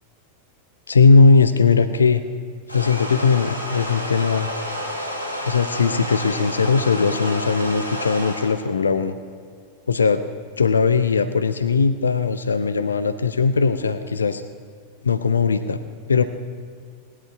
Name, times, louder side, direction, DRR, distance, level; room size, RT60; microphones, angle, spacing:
voice 1, 0.9-2.2 2.7-4.5 5.5-9.2 9.9-10.2 10.6-14.4 15.0-15.8 16.1-16.2, left 4 dB, 75° left, 11 dB, 0.6 m, -19 dB
sound 1, 2.7-8.5, equal, 85° right, 3.1 m, -30 dB
19.0 x 11.0 x 5.9 m, 2.1 s
figure-of-eight pair, 90°, 0 cm